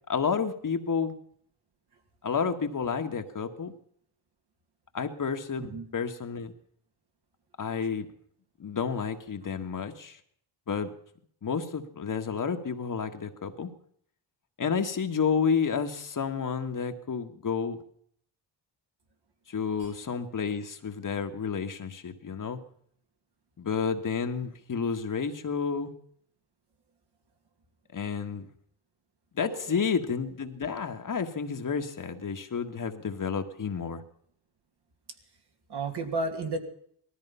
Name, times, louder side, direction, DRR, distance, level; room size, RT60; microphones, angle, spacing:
voice 1, 0.1-1.1 2.2-3.7 4.9-6.5 7.6-8.1 8.6-10.2 10.7-10.9 11.4-13.7 14.6-17.8 19.5-22.6 23.6-25.9 27.9-28.5 29.3-34.0, left 6 dB, 40° left, 6 dB, 1.6 m, -30 dB
voice 2, 29.4-29.8 35.7-36.6, right 2 dB, 55° right, 4 dB, 2.6 m, -33 dB
18.5 x 13.5 x 5.6 m, 0.64 s
cardioid pair, 85°, 47 cm